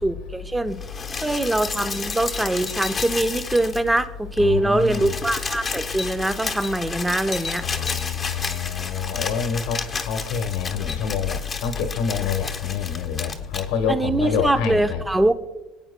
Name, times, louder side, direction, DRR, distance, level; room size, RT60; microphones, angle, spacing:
voice 1, 0.0-0.8 1.2-7.7 13.9-15.3, right 1 dB, 10° right, 0.7 m, -23 dB
sound 1, 0.7-4.0 4.3-4.4 4.7-13.7 14.6-14.7, left 4 dB, 25° left, 1.0 m, -32 dB
voice 2, 4.4-5.1 7.6-15.0, left 7 dB, 80° left, 1.2 m, -26 dB
26.0 x 8.9 x 2.2 m
cardioid pair, 120°, 0 cm